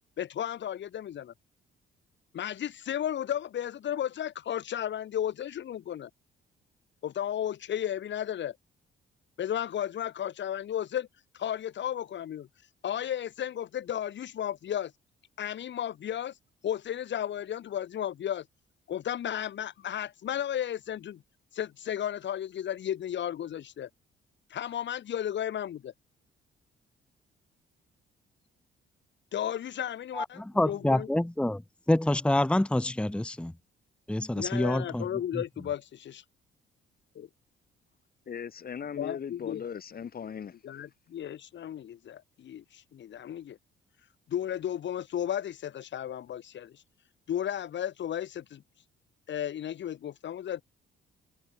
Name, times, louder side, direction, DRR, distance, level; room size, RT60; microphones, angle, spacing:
voice 1, 0.2-1.3 2.3-6.1 7.0-8.6 9.4-11.1 11.3-12.5 12.8-14.9 15.4-16.3 16.6-18.5 18.9-21.2 21.5-23.9 24.5-25.9 29.3-31.1 34.3-36.2 39.0-39.6 40.6-43.6 44.3-46.8 47.3-48.6 49.3-50.6, left 10 dB, 65° left, 4.1 m, -34 dB
voice 2, 30.6-31.6 31.9-33.5 34.1-35.0, left 1 dB, 5° left, 1.1 m, -26 dB
voice 3, 38.3-40.6, left 7 dB, 50° left, 3.4 m, -38 dB
cardioid pair, 90°, 20 cm